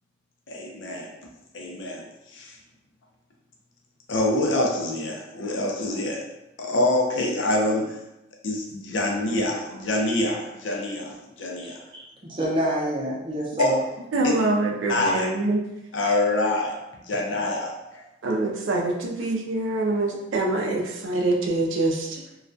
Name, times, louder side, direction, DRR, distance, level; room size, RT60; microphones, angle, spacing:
voice 1, 0.5-1.1 1.5-2.1 2.3-2.6 4.1-6.3 6.6-8.0 8.4-11.8 13.6-13.8 14.9-15.3 15.9-18.0, left 2 dB, 70° left, 0 dB, 0.5 m, -26 dB
voice 2, 11.6-13.8 14.1-14.2, equal, 25° right, -4 dB, 0.6 m, -28 dB
voice 3, 14.1-15.6 18.2-22.2, right 2 dB, 80° right, 0 dB, 0.4 m, -25 dB
2.3 x 2.1 x 2.5 m, 0.93 s
head